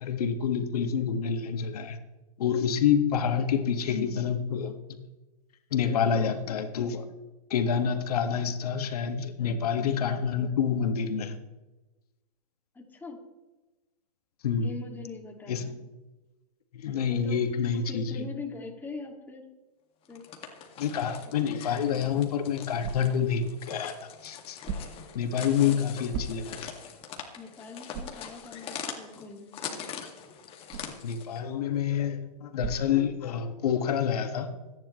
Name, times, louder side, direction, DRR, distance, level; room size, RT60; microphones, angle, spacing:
voice 1, 0.0-2.0 2.4-4.7 5.7-7.0 7.5-11.4 14.4-14.7 15.5-15.6 16.7-18.3 20.8-23.9 24.2-24.6 25.2-26.7 31.0-34.5, left 7 dB, 70° left, 6 dB, 1.8 m, -27 dB
voice 2, 12.7-13.3 14.6-15.8 17.1-19.5 20.1-20.3 27.4-29.8, left 4 dB, 10° left, 1 dB, 2.3 m, -42 dB
sound 1, 20.0-31.4, left 7 dB, 30° left, 2.1 m, -42 dB
sound 2, 21.9-33.7, right 5 dB, 35° right, 1.3 m, -44 dB
25.5 x 10.5 x 3.2 m, 1.1 s
hypercardioid pair, 130°, 20 cm